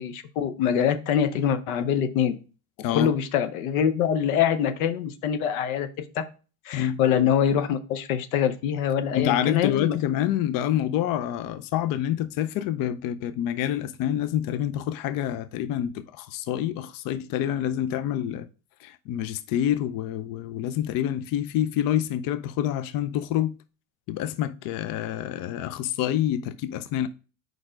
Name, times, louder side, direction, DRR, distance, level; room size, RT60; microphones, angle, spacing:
voice 1, 0.0-2.4 2.9-6.2 6.6-10.0, left 8 dB, 85° left, 0.8 m, -24 dB
voice 2, 9.1-18.5 18.8-23.6 24.1-27.1, left 11 dB, 55° left, 0.5 m, -27 dB
4.8 x 4.4 x 4.9 m
supercardioid pair, 90°, 41 cm